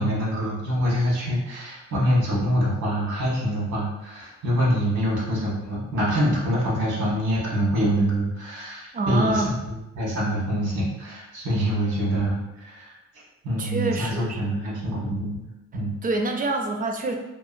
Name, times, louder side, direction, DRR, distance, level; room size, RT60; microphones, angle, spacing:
voice 1, 0.0-13.0 13.4-16.0, equal, 85° right, -5 dB, 1.3 m, -25 dB
voice 2, 8.9-9.6 13.6-14.5 15.7-17.2, right 2 dB, 30° right, 4 dB, 0.4 m, -26 dB
2.9 x 2.3 x 2.4 m, 0.97 s
cardioid pair, 90°, 30 cm